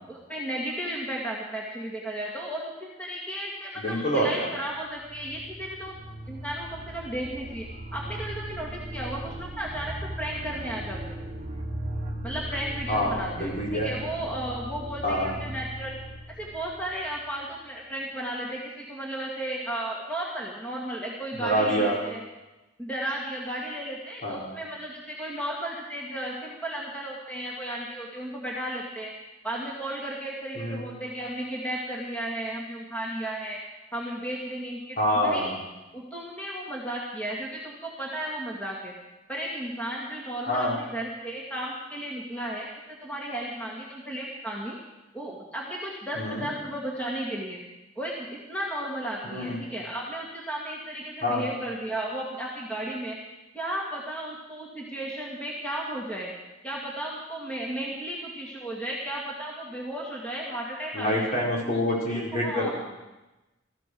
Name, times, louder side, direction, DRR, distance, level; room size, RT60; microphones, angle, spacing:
voice 1, 0.1-5.9 6.3-11.2 12.2-16.0 16.4-22.2 22.8-29.1 29.4-33.6 33.9-35.5 35.9-38.9 39.3-44.8 45.1-47.6 48.0-53.2 53.5-56.3 56.6-61.3 62.1-62.7, right 1 dB, 5° left, -4 dB, 2.1 m, -34 dB
voice 2, 3.8-4.5 12.9-13.9 15.0-15.3 21.4-22.0 24.2-24.5 30.5-30.9 35.0-35.6 40.5-40.7 46.1-46.5 49.2-49.6 51.2-51.5 60.9-62.7, equal, 40° left, -3 dB, 4.6 m, -26 dB
sound 1, 4.7-17.5, right 1 dB, 35° right, 1.2 m, -38 dB
19.0 x 14.5 x 4.7 m, 1.1 s
head